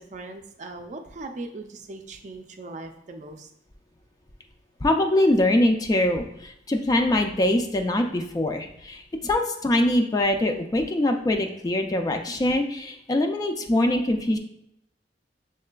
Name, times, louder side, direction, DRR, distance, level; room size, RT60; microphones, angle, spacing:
voice 1, 0.0-3.5, right 2 dB, 45° right, 5 dB, 0.4 m, -39 dB
voice 2, 4.8-14.4, left 1 dB, 20° left, 4 dB, 0.3 m, -23 dB
6.4 x 3.2 x 2.2 m, 0.77 s
head